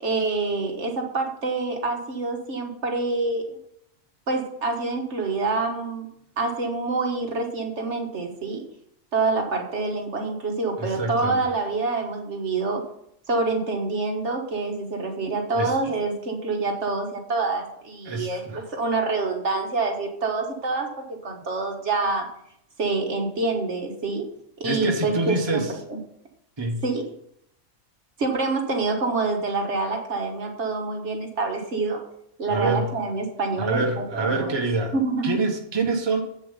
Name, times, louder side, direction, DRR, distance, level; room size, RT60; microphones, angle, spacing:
voice 1, 0.0-3.6 4.3-6.1 6.4-8.6 9.1-12.9 13.3-22.3 22.8-24.3 24.6-26.0 26.8-27.0 28.2-32.0 32.4-34.6 34.9-35.4, right 3 dB, 55° right, 2 dB, 1.5 m, -26 dB
voice 2, 10.8-11.4 15.6-15.7 18.0-18.6 24.6-25.7 26.6-26.8 32.5-32.9 33.6-34.9 35.2-36.2, right 3 dB, 20° right, 2 dB, 1.2 m, -26 dB
7.8 x 7.0 x 5.5 m, 0.72 s
omnidirectional pair, 1.5 m